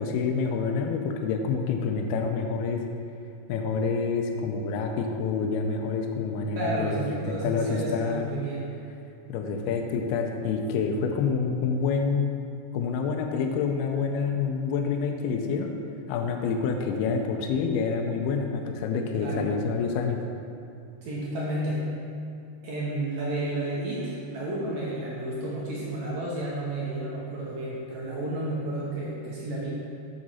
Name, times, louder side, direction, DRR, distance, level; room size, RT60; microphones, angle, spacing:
voice 1, 0.0-2.8 3.5-8.3 9.3-12.3 12.7-15.7 16.1-20.2, left 5 dB, 80° left, 3 dB, 2.5 m, -27 dB
voice 2, 6.5-8.7 19.2-19.5 21.0-21.8 22.6-29.7, right 1 dB, 70° right, -6 dB, 1.7 m, -31 dB
7.6 x 7.1 x 4.2 m, 2.5 s
omnidirectional pair, 4.7 m